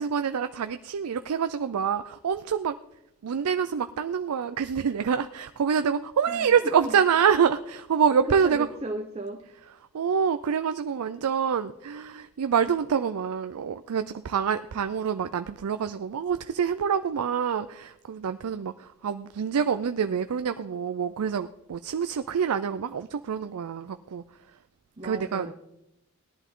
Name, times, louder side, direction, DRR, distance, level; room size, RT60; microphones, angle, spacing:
voice 1, 0.0-2.8 3.2-8.7 9.9-24.2 25.0-25.5, right 7 dB, 85° right, 10 dB, 0.4 m, -26 dB
voice 2, 6.3-6.9 8.4-9.4 25.0-25.5, right 1 dB, 25° right, 3 dB, 0.8 m, -35 dB
17.5 x 11.0 x 3.7 m, 0.85 s
head